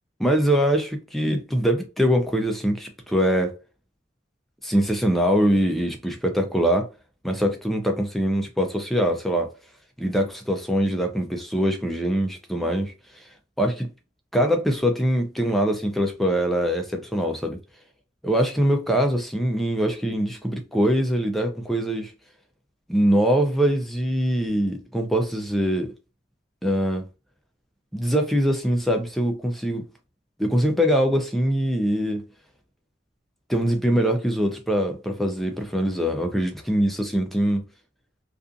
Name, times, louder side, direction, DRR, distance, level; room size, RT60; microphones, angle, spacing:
voice 1, 0.2-3.6 4.6-6.9 7.2-9.5 10.0-12.9 13.6-13.9 14.3-17.6 18.2-22.1 22.9-25.9 26.6-27.1 27.9-29.9 30.4-32.2 33.5-37.6, equal, ahead, 0.5 m, -23 dB
2.4 x 2.4 x 2.5 m
head